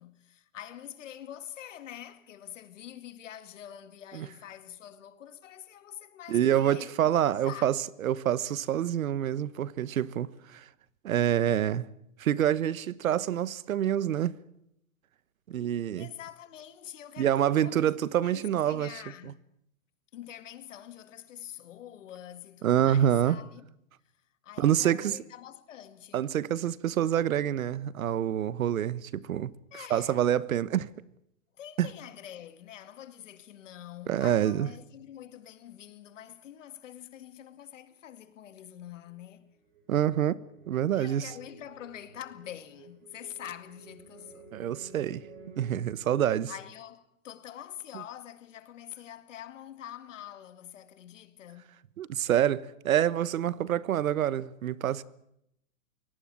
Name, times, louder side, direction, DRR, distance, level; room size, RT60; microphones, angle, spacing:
voice 1, 0.0-7.7 16.0-17.9 18.2-19.4 20.1-23.6 24.4-26.3 29.7-30.2 31.6-39.5 40.9-44.5 46.5-51.7, left 11 dB, 60° left, 2.1 m, -46 dB
voice 2, 6.3-10.6 11.0-11.8 12.2-14.3 15.5-16.1 17.2-19.0 22.6-23.4 24.6-25.2 26.1-29.5 29.9-30.9 31.8-31.9 34.1-34.7 39.9-40.4 40.7-41.3 44.5-45.2 45.6-46.5 52.0-55.0, right 10 dB, 75° right, 1.2 m, -27 dB
sound 1, 39.1-45.8, right 4 dB, 50° right, 5.4 m, -53 dB
24.5 x 18.0 x 8.8 m
hypercardioid pair, 165°, 42 cm